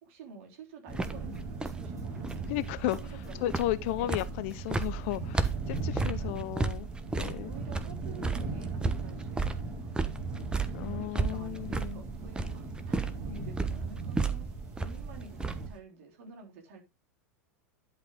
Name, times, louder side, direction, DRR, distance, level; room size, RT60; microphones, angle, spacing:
voice 1, 0.0-2.5 2.9-3.5 4.0-4.3 5.9-6.5 7.4-9.9 10.9-14.5 14.8-16.8, right 4 dB, 55° right, 3.4 m, -50 dB
sound 1, 0.9-15.8, right 3 dB, 10° right, 1.1 m, -34 dB
sound 2, 0.9-15.7, right 3 dB, 35° right, 3.3 m, -39 dB
sound 3, 1.0-3.3 3.5-5.8, right 3 dB, 90° right, 1.7 m, -51 dB
voice 2, 2.5-3.0 3.4-6.9 7.2-7.5 10.7-12.0, left 15 dB, 55° left, 0.8 m, -34 dB
11.5 x 5.1 x 3.8 m
figure-of-eight pair, 85°, 8 cm